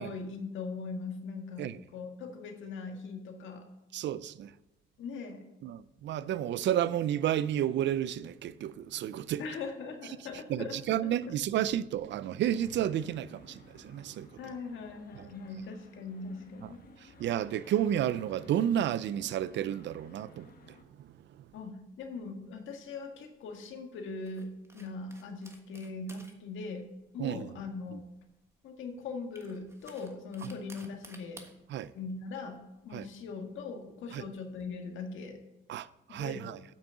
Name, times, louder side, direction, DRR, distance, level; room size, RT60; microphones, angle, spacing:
voice 1, 0.0-1.7 1.9-3.7 5.0-5.4 9.4-11.1 14.4-16.8 21.5-26.8 27.1-28.0 28.6-31.5 31.9-35.4 36.1-36.4, left 4 dB, 80° left, 1.7 m, -40 dB
voice 2, 3.9-4.5 5.6-9.4 10.5-14.4 15.1-15.3 17.0-21.1 27.2-27.5 27.9-28.0 30.4-30.5 31.7-31.9 32.9-33.1 34.1-34.2 35.7-36.6, right 11 dB, 65° right, 0.5 m, -31 dB
sound 1, 12.5-20.8, left 3 dB, 45° left, 1.5 m, -57 dB
sound 2, 22.0-34.7, right 1 dB, 15° right, 1.4 m, -58 dB
8.6 x 6.0 x 6.8 m
cardioid pair, 90°, 20 cm